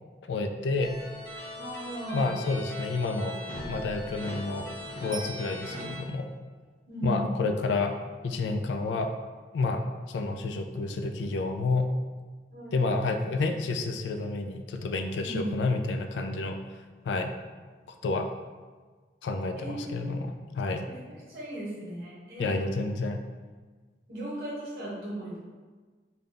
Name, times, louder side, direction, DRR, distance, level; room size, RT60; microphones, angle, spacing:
voice 1, 0.3-0.9 2.1-3.4 3.7-4.7 5.0-6.3 7.0-7.9 8.2-9.1 9.5-9.8 10.1-11.9 12.7-16.6 17.0-17.3 18.0-18.3 19.2-20.9 22.4-23.2, left 3 dB, 85° left, 6 dB, 0.3 m, -29 dB
sound 1, 0.8-6.0, left 1 dB, 50° left, 1.1 m, -39 dB
voice 2, 1.6-2.3 6.9-7.3 12.5-12.8 15.2-15.6 19.6-20.1 20.9-22.5 24.1-25.4, right 1 dB, 50° right, -7 dB, 0.8 m, -36 dB
Bicycle bell, 5.1-6.2 15.3-15.4, right 5 dB, 20° right, 1.2 m, -44 dB
3.6 x 2.2 x 3.7 m, 1.4 s
head